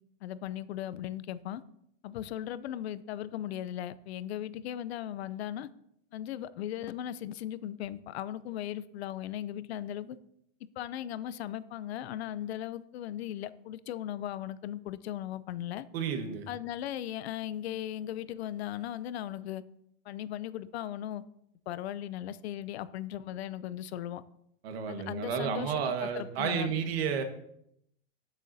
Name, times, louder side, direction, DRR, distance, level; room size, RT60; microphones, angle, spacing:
voice 1, 0.2-1.6 2.0-5.7 6.1-10.2 10.8-15.9 16.5-19.6 20.1-21.2 21.7-24.2 24.9-26.7, left 11 dB, 80° left, 16 dB, 0.6 m, -37 dB
voice 2, 15.9-16.5 24.6-27.2, right 7 dB, 70° right, 6 dB, 1.6 m, -31 dB
12.0 x 7.3 x 2.8 m, 0.74 s
supercardioid pair, 155°, 31 cm